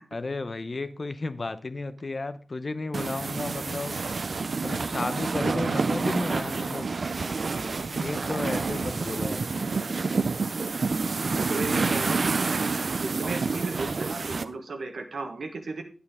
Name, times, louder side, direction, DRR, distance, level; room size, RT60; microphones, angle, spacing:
voice 1, 0.1-4.0 4.6-6.9 7.7-9.7 11.4-12.0, left 3 dB, 50° left, 0.7 m, -34 dB
sound 1, 2.9-14.4, right 4 dB, 70° right, 0.6 m, -28 dB
voice 2, 4.9-5.4 7.3-7.7 10.8-11.2 11.5-12.3 12.7-15.8, right 3 dB, 85° right, 1.3 m, -35 dB
sound 2, 6.5-6.8 7.1-7.2 8.3-8.7 9.9-10.0 11.8-12.1 13.3-13.5 14.7-14.8, right 2 dB, 35° right, 1.1 m, -45 dB
9.7 x 8.7 x 3.6 m
wide cardioid pair, 65°, 0 cm